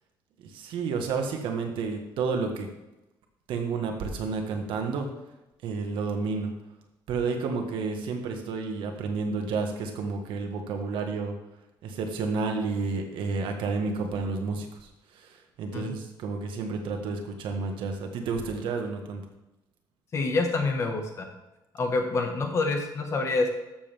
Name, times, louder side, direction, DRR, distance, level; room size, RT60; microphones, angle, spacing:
voice 1, 0.5-2.7 3.5-5.1 5.6-6.5 7.1-11.3 11.8-14.7 15.1-19.2, right 4 dB, 85° right, 4 dB, 1.6 m, -30 dB
voice 2, 20.1-21.3 21.7-23.5, left 3 dB, 35° left, 4 dB, 1.5 m, -27 dB
13.5 x 7.3 x 3.6 m, 0.98 s
cardioid pair, 165°, 8 cm